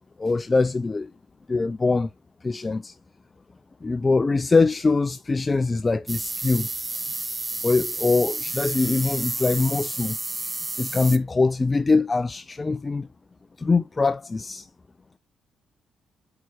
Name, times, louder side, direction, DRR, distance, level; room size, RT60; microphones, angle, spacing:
voice 1, 0.2-1.1 1.5-2.1 2.4-2.9 3.8-6.7 7.6-10.2 10.8-13.1 13.6-14.7, left 3 dB, 25° left, 0.5 m, -23 dB
sound 1, 6.1-11.2, right 2 dB, 20° right, 1.0 m, -31 dB
8.0 x 4.8 x 4.7 m
cardioid pair, 90°, 0 cm